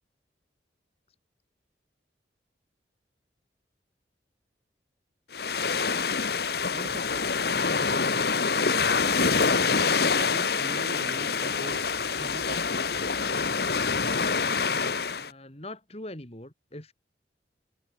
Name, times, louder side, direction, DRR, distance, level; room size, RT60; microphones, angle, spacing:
sound 1, 5.3-15.3, left 5 dB, 60° left, 1.2 m, -26 dB
voice 1, 6.7-8.3 9.0-9.7 10.0-12.9, right 1 dB, 40° right, 3.2 m, -43 dB
voice 2, 15.2-16.9, left 1 dB, 35° left, 3.4 m, -42 dB
head